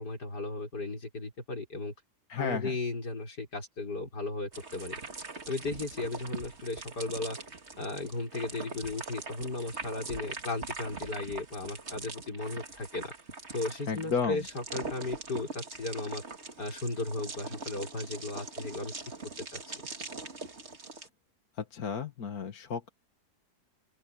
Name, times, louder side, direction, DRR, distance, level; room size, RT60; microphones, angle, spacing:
voice 1, 0.0-1.9 2.4-4.9 5.5-7.4 7.8-13.1 13.5-16.2 16.6-18.9 19.5-19.7, left 2 dB, 85° left, 5.8 m, -35 dB
voice 2, 2.3-2.8 13.9-14.5 21.6-22.9, left 6 dB, 65° left, 1.9 m, -33 dB
sound 1, 4.5-21.1, right 3 dB, 40° right, 2.4 m, -42 dB
open air
omnidirectional pair, 1.7 m